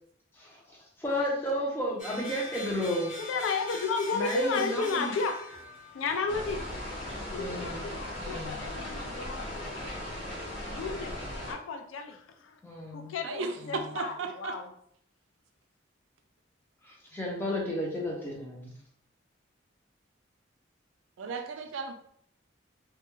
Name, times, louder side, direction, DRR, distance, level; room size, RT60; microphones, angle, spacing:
voice 1, 0.3-3.2 4.1-5.1 7.4-7.8 8.2-8.6 12.6-13.1 13.6-13.9 16.8-18.7, equal, 10° left, -3 dB, 0.5 m, -33 dB
sound 1, 2.0-7.9, left 2 dB, 40° left, 0.8 m, -44 dB
voice 2, 3.2-5.7 5.9-6.6 7.3-9.9 10.2-11.2 11.5-12.6 12.9-14.7, left 4 dB, 85° left, 6 dB, 0.4 m, -33 dB
sound 2, 6.3-11.5, left 1 dB, 60° left, 1.1 m, -38 dB
voice 3, 13.2-14.5 21.2-21.9, right 4 dB, 80° right, 5 dB, 0.4 m, -35 dB
2.2 x 2.1 x 3.0 m, 0.68 s
head